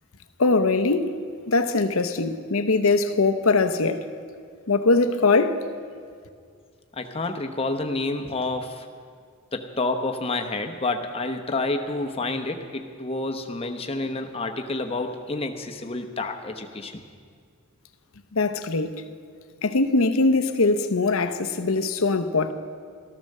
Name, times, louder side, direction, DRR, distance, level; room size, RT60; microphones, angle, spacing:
voice 1, 0.4-1.2 1.5-4.0 4.7-5.6 18.3-19.0 19.6-22.5, left 3 dB, 70° left, 0.8 m, -21 dB
voice 2, 7.0-8.9 9.5-17.0, left 2 dB, 25° left, 0.9 m, -29 dB
14.0 x 13.5 x 6.6 m
head